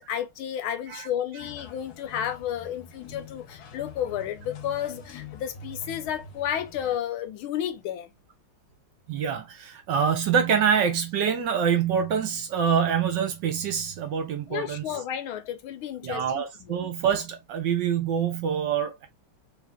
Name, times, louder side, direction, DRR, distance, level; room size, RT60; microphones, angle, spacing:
voice 1, 0.0-8.1 14.5-16.8, left 10 dB, 75° left, 1.5 m, -32 dB
sound 1, 1.4-7.0, left 5 dB, 60° left, 1.2 m, -44 dB
voice 2, 9.1-14.8 16.0-19.1, right 7 dB, 65° right, 1.3 m, -25 dB
3.4 x 3.2 x 3.6 m
omnidirectional pair, 2.4 m